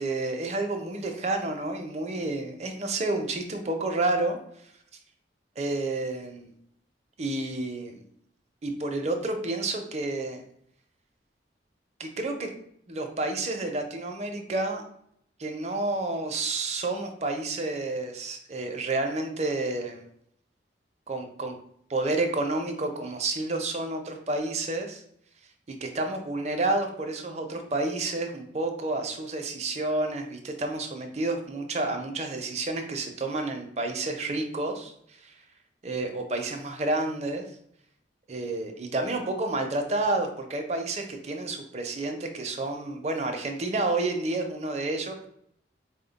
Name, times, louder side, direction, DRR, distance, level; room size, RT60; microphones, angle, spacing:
voice 1, 0.0-4.4 5.6-6.5 7.2-8.0 8.6-10.4 12.0-12.5 12.9-14.8 15.4-20.1 21.1-21.6 21.9-25.0 25.8-34.9 35.2-35.3 35.8-37.4 38.3-45.3, right 2 dB, 35° right, 4 dB, 0.5 m, -30 dB
4.2 x 2.1 x 3.9 m, 0.71 s
head